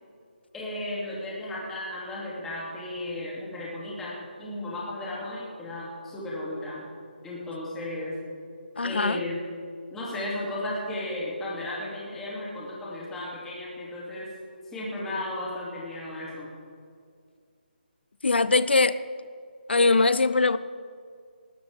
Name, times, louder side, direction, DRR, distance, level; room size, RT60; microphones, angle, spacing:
voice 1, 0.5-6.9 7.2-8.1 8.8-9.4 9.9-14.3 14.7-16.5, left 1 dB, 5° left, -6 dB, 2.7 m, -34 dB
voice 2, 8.8-9.2 18.2-19.0 19.7-20.6, left 3 dB, 90° left, 14 dB, 0.6 m, -21 dB
19.5 x 13.0 x 3.6 m, 2.2 s
hypercardioid pair, 170°, 6 cm